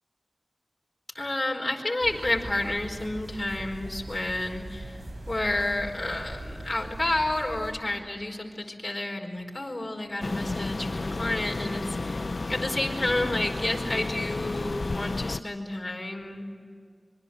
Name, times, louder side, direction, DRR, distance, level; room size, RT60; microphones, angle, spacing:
voice 1, 1.1-16.5, left 2 dB, 35° left, 0 dB, 4.7 m, -30 dB
sound 1, 2.0-7.7, right 1 dB, 80° right, 6.3 m, -41 dB
sound 2, 10.2-15.4, left 3 dB, 65° left, 0.6 m, -32 dB
26.0 x 23.0 x 8.0 m, 2.2 s
wide cardioid pair, 50°, 0 cm